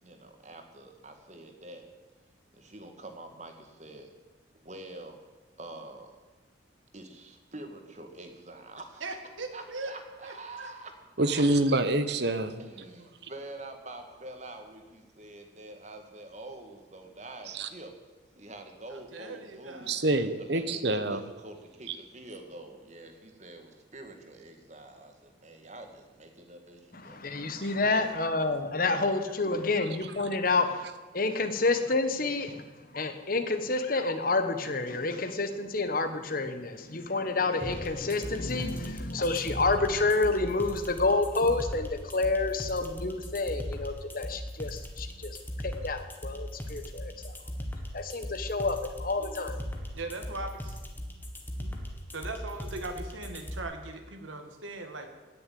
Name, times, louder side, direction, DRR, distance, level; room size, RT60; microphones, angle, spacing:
voice 1, 0.0-1.8 2.5-4.1 4.6-5.2 5.6-6.2 6.9-9.0 9.5-10.9 11.2-11.4 12.6-17.9 18.4-19.9 20.4-27.2, right 2 dB, 35° right, 1.9 m, -46 dB
voice 2, 9.0-9.9 10.2-10.7 12.8-13.1 18.9-19.9 27.9-28.0 49.9-50.5 51.6-51.8 52.1-55.1, right 2 dB, 85° right, 2.1 m, -39 dB
voice 3, 11.2-12.6 17.5-17.7 19.9-21.2 21.9-22.0, right 2 dB, 60° right, 1.1 m, -26 dB
voice 4, 26.9-30.9 31.1-47.3 47.9-49.6, left 3 dB, 45° left, 1.3 m, -29 dB
sound 1, 37.6-53.6, equal, 10° left, 1.5 m, -38 dB
16.5 x 6.9 x 9.3 m
head